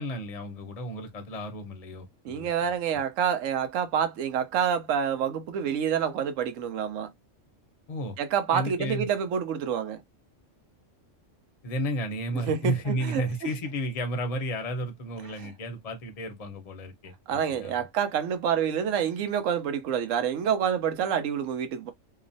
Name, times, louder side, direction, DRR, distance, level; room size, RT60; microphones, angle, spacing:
voice 1, 0.0-2.7 7.9-8.2 8.5-9.1 11.6-17.9, equal, 40° left, 0.6 m, -33 dB
voice 2, 2.2-7.1 8.2-10.0 12.5-13.2 15.4-15.5 17.3-21.9, right 8 dB, 80° right, 1.0 m, -27 dB
2.9 x 2.0 x 2.6 m
omnidirectional pair, 1.3 m